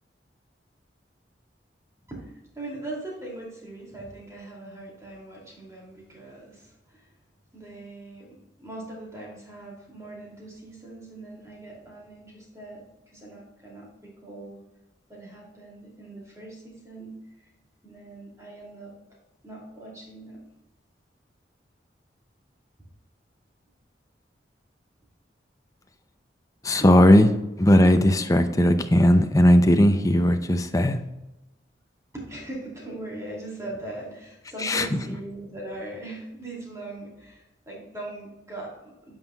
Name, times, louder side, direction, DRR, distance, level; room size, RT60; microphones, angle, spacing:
voice 1, 2.1-7.1 7.5-12.9 13.1-14.6 15.1-17.2 17.8-18.9 19.4-20.4 26.8-26.9 32.1-39.1, right 2 dB, 20° right, -3 dB, 2.5 m, -40 dB
voice 2, 26.6-27.3 27.6-31.0 34.6-34.9, left 1 dB, 20° left, 8 dB, 0.5 m, -18 dB
9.0 x 6.2 x 2.3 m, 0.96 s
head